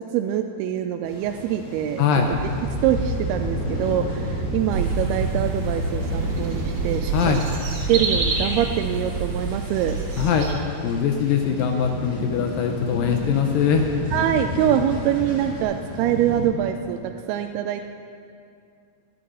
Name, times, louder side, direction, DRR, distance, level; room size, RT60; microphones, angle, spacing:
voice 1, 0.0-2.0 2.8-7.4 7.9-10.0 14.1-17.0 17.3-17.8, right 10 dB, 80° right, 6 dB, 2.4 m, -24 dB
sound 1, 1.0-16.4, equal, 40° left, 4.3 m, -34 dB
voice 2, 2.0-2.3 7.1-7.4 10.2-13.9, left 7 dB, 75° left, 4 dB, 2.1 m, -22 dB
sound 2, 2.2-15.6, right 1 dB, 20° left, 4.4 m, -34 dB
sound 3, 4.7-10.5, right 3 dB, 55° right, 2.9 m, -27 dB
19.5 x 9.9 x 5.6 m, 2.5 s
omnidirectional pair, 4.7 m